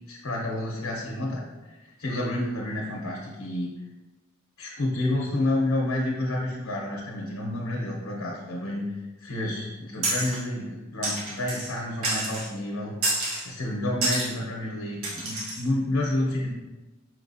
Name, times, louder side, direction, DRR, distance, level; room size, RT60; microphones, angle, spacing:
voice 1, 0.1-3.7 4.6-12.9 13.4-16.5, left 1 dB, 85° left, -2 dB, 0.8 m, -29 dB
sound 1, 10.0-10.4 11.0-11.7 12.0-12.5 13.0-13.4 14.0-14.3 15.0-15.6, right 2 dB, 80° right, 1.2 m, -28 dB
5.8 x 2.9 x 2.7 m, 1.1 s
head